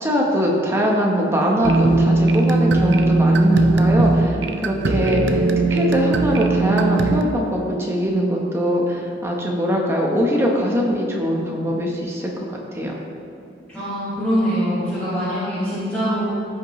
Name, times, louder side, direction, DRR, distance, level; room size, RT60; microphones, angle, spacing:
voice 1, 0.0-12.9, equal, 15° right, -2 dB, 1.0 m, -22 dB
sound 1, 1.6-7.2, right 2 dB, 80° right, 0.5 m, -18 dB
voice 2, 13.7-16.4, equal, 10° left, -15 dB, 2.2 m, -23 dB
15.0 x 5.3 x 3.1 m, 2.7 s
head